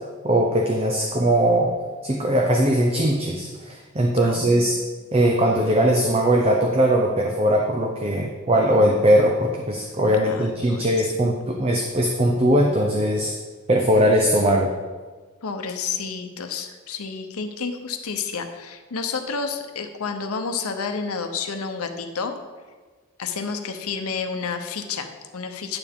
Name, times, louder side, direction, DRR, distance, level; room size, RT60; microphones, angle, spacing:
voice 1, 0.2-1.7 2.0-4.8 5.1-13.3 13.7-14.7, right 1 dB, 25° right, 1 dB, 0.6 m, -20 dB
voice 2, 4.2-4.8 10.3-11.3 15.4-22.3 23.2-25.8, left 5 dB, 90° left, 6 dB, 0.8 m, -30 dB
9.6 x 7.0 x 3.6 m, 1.4 s
head